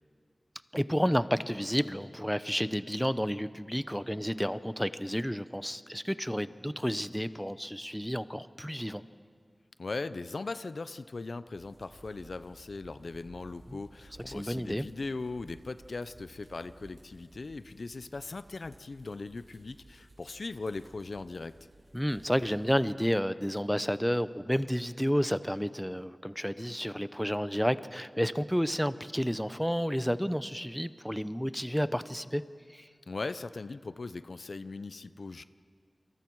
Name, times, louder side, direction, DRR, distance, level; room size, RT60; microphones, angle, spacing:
voice 1, 0.7-9.0 13.7-13.8 14.3-14.9 21.9-32.4 32.7-32.9, equal, ahead, 14 dB, 0.7 m, -31 dB
voice 2, 9.8-21.6 33.1-35.4, left 3 dB, 80° left, 13 dB, 0.6 m, -39 dB
sound 1, 11.5-22.7, right 1 dB, 75° right, 5.7 m, -57 dB
28.0 x 24.0 x 4.7 m, 2.1 s
wide cardioid pair, 45°, 0 cm